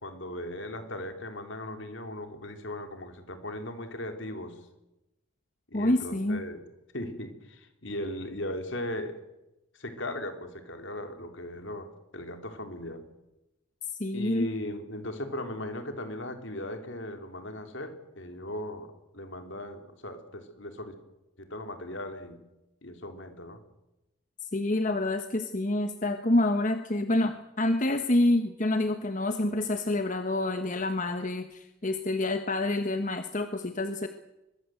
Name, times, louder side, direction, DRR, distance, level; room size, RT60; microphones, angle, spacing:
voice 1, 0.0-4.6 5.7-6.6 6.9-9.2 9.7-13.0 14.1-21.0 21.4-22.4 22.8-23.6, left 1 dB, 60° left, 7 dB, 3.6 m, -38 dB
voice 2, 5.7-6.4 14.0-14.5 24.4-34.1, left 1 dB, 35° left, 8 dB, 1.2 m, -27 dB
23.5 x 21.5 x 7.9 m, 0.93 s
head